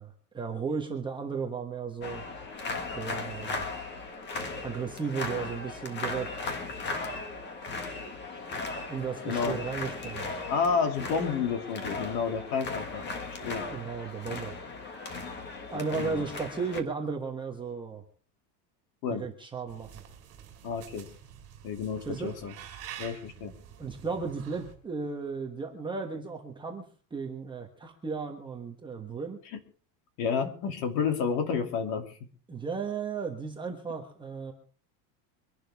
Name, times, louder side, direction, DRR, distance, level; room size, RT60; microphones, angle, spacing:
voice 1, 0.0-2.2 2.9-3.6 4.6-6.3 8.9-10.3 13.7-14.6 15.7-18.0 19.1-19.9 22.0-22.3 23.8-26.8 27.1-29.4 32.5-34.5, right 5 dB, 10° right, 1 dB, 1.3 m, -35 dB
sound 1, 2.0-16.8, left 3 dB, 20° left, 1.7 m, -37 dB
voice 2, 9.2-9.6 10.5-13.1 13.4-13.7 15.9-16.2 19.0-19.2 20.6-21.1 21.6-22.5 23.0-23.5 29.5-29.6 30.2-32.1, left 6 dB, 45° left, 5 dB, 2.9 m, -30 dB
sound 2, 19.7-24.7, right 9 dB, 30° right, 4.3 m, -47 dB
24.5 x 11.5 x 3.6 m, 0.41 s
supercardioid pair, 170°, 50 cm